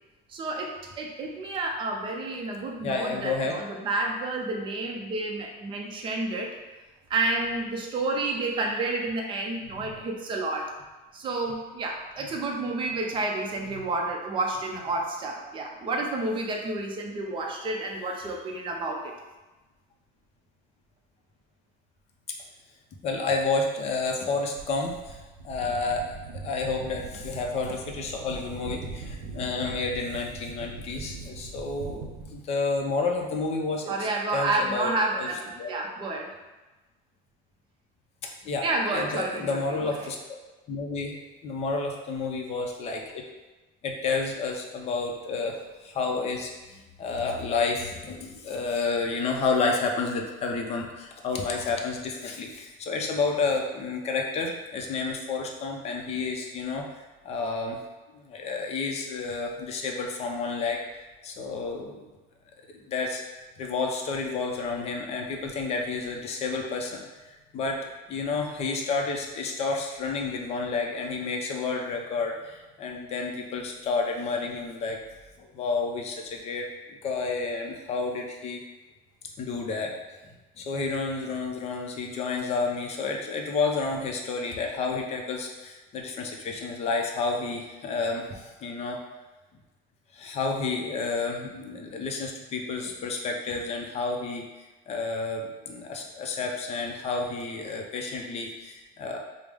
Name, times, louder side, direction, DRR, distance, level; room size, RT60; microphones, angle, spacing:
voice 1, 0.3-6.5 7.1-10.7 11.1-19.1 33.9-35.4 35.7-36.3 38.6-40.1, right 2 dB, 25° right, 1 dB, 0.5 m, -30 dB
voice 2, 2.8-3.6 13.7-13.8 23.0-25.2 25.4-26.2 26.4-35.3 35.6-35.8 38.4-38.7 38.9-40.2 40.7-41.2 41.4-43.2 43.8-56.8 57.2-57.8 58.1-62.0 62.9-63.2 63.6-75.0 75.4-78.6 79.4-80.0 80.6-88.3 88.6-89.0 90.1-94.4 94.9-99.2, left 4 dB, 30° left, 1 dB, 0.5 m, -30 dB
sound 1, 24.6-32.4, right 4 dB, 85° right, 0.6 m, -40 dB
4.9 x 2.0 x 3.4 m, 1.1 s
cardioid pair, 160°, 20 cm